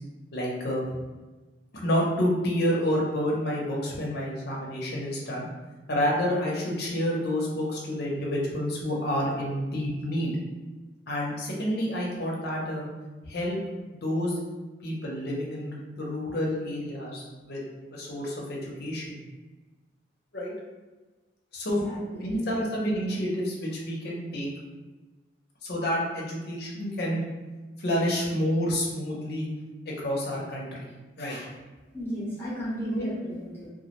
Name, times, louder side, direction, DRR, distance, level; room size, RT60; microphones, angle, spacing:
voice 1, 0.3-0.9 1.8-5.5 5.9-10.3 11.1-12.9 13.3-13.6 13.9-14.3 14.8-17.6 17.9-19.2 20.3-20.5 21.5-21.8 22.2-24.5 25.6-27.2 27.8-29.5 29.9-30.9 31.2-31.5 32.9-33.1, equal, 55° left, -3 dB, 0.6 m, -29 dB
voice 2, 21.8-22.3 31.9-33.7, equal, 10° left, -8 dB, 0.7 m, -33 dB
2.2 x 2.0 x 2.9 m, 1.2 s
head